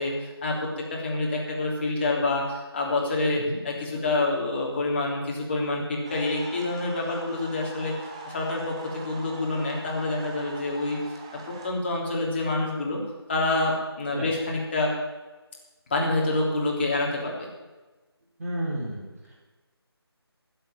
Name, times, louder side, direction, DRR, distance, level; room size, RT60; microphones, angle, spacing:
voice 1, 0.0-7.9 8.2-11.0 11.6-13.0 13.3-14.9 15.9-17.5, left 2 dB, 25° left, -2 dB, 3.2 m, -27 dB
sound 1, 6.0-11.7, right 3 dB, 15° right, 0.8 m, -43 dB
voice 2, 18.4-19.3, right 1 dB, 35° right, -5 dB, 4.3 m, -32 dB
16.0 x 7.8 x 9.1 m, 1.2 s
figure-of-eight pair, 160°, 14 cm